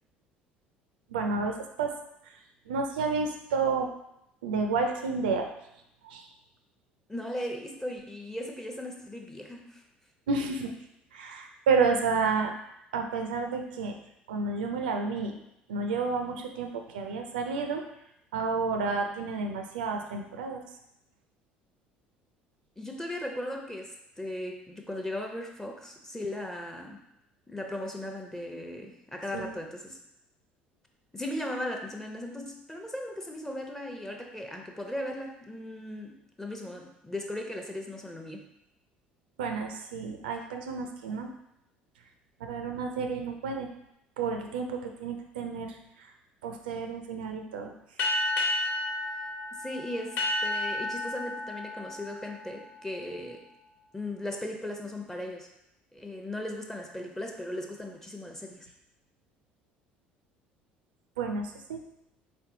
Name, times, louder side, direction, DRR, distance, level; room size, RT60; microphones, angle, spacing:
voice 1, 1.1-1.9 2.2-2.3 2.7-3.9 4.4-5.5 6.0-6.3 10.3-10.7 11.1-12.5 12.9-13.9 14.3-15.4 15.7-17.8 18.3-20.6 29.3-29.5 39.4-41.3 42.4-43.7 44.2-46.1 46.4-47.7 61.2-61.8, right 4 dB, 70° right, 4 dB, 0.4 m, -30 dB
voice 2, 7.1-9.8 22.8-27.0 27.5-30.0 31.1-38.4 49.6-53.4 53.9-55.5 55.9-58.7, left 1 dB, 10° left, 3 dB, 0.7 m, -37 dB
sound 1, 48.0-53.1, left 1 dB, 45° left, 1.2 m, -32 dB
4.3 x 3.8 x 2.8 m, 0.82 s
figure-of-eight pair, 60°, 5 cm